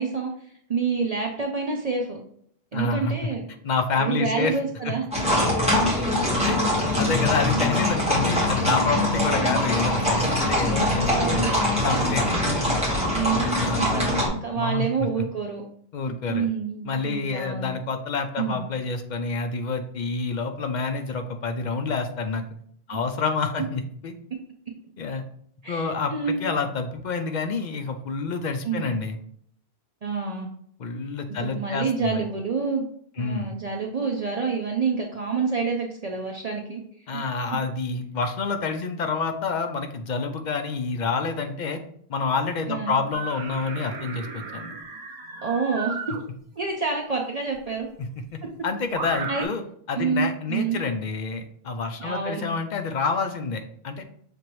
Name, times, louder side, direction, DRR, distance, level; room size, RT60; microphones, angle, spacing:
voice 1, 0.0-2.2 2.7-3.5 4.0-5.0 7.7-7.8 9.3-9.7 11.1-11.6 13.1-15.6 16.0-17.7 18.4-18.6 22.9-23.0 25.6-26.4 28.6-28.9 30.0-30.5 31.3-32.8 33.2-36.8 37.1-37.2 42.7-43.0 45.4-46.0 46.6-47.9 49.3-49.5 49.9-50.8 52.0-52.5, right 5 dB, 45° right, 0 dB, 0.5 m, -28 dB
voice 2, 2.7-3.1 3.6-4.6 4.8-4.9 6.4-6.6 7.0-11.5 11.8-12.4 13.6-14.2 14.5-15.2 15.9-16.5 16.8-22.4 22.9-24.1 25.0-25.2 25.7-29.2 30.8-32.2 33.2-33.5 37.1-41.8 42.1-44.7 48.0-48.2 48.6-49.6 49.9-54.0, left 4 dB, 55° left, 6 dB, 0.5 m, -28 dB
sound 1, 5.1-14.3, left 1 dB, 5° right, 1.4 m, -23 dB
sound 2, 43.1-46.2 47.6-47.7 48.9-49.4, right 5 dB, 85° right, 1.0 m, -35 dB
6.1 x 2.9 x 3.0 m, 0.64 s
omnidirectional pair, 1.1 m